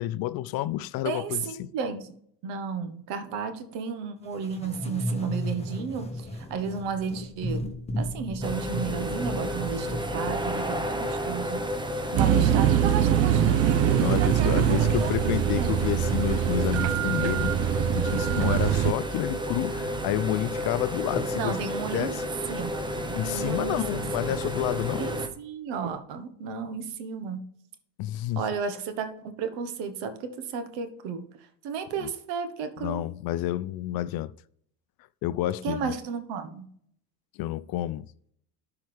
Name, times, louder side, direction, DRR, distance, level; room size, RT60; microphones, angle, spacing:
voice 1, 0.0-1.7 13.9-17.6 17.9-21.6 21.9-22.2 23.1-25.1 28.0-28.5 32.0-32.1 32.8-34.3 35.2-35.9 37.4-38.1, left 14 dB, 55° left, 0.5 m, -30 dB
voice 2, 1.0-2.2 2.4-7.6 8.0-11.7 12.1-15.8 21.3-22.2 22.5-24.0 24.3-24.4 25.0-27.5 28.4-29.1 29.4-31.2 31.6-33.0 35.6-36.7, right 6 dB, 70° right, 1.3 m, -33 dB
sound 1, 4.3-11.1, equal, 15° left, 1.3 m, -35 dB
sound 2, 8.4-25.3, equal, 10° right, 1.0 m, -32 dB
sound 3, 12.2-18.9, right 11 dB, 35° right, 0.4 m, -23 dB
12.5 x 4.8 x 3.4 m
supercardioid pair, 90°, 44 cm